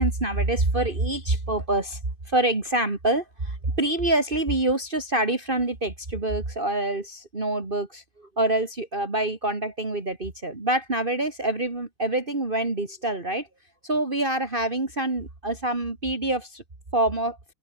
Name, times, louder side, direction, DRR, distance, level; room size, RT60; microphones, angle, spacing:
voice 1, 0.0-2.0 2.3-13.5 13.8-16.6 16.9-17.4, right 2 dB, 25° right, 3.0 m, -26 dB
open air
omnidirectional pair, 2.1 m